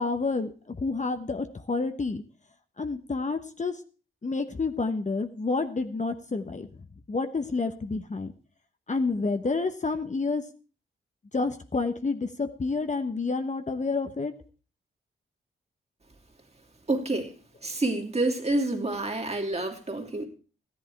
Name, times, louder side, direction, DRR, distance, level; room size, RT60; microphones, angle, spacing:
voice 1, 0.0-2.2 2.8-3.8 4.2-6.7 7.1-8.3 8.9-10.4 11.3-14.3, left 3 dB, 35° left, 8 dB, 1.1 m, -29 dB
voice 2, 16.9-17.3 17.6-20.3, right 2 dB, 30° right, 3 dB, 2.7 m, -28 dB
13.5 x 10.5 x 4.7 m, 0.37 s
cardioid pair, 55°, 21 cm